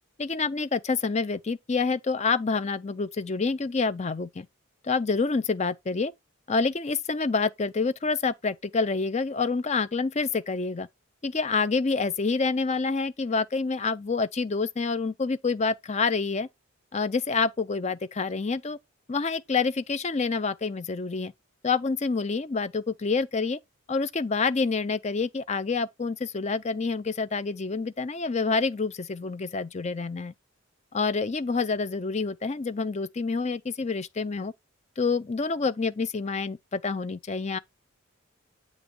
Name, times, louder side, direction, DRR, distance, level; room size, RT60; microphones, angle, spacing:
voice 1, 0.2-4.5 4.8-6.1 6.5-10.9 11.2-16.5 16.9-18.8 19.1-21.3 21.6-23.6 23.9-30.3 30.9-34.5 35.0-37.6, left 4 dB, 30° left, 0.5 m, -27 dB
8.4 x 3.1 x 5.3 m
head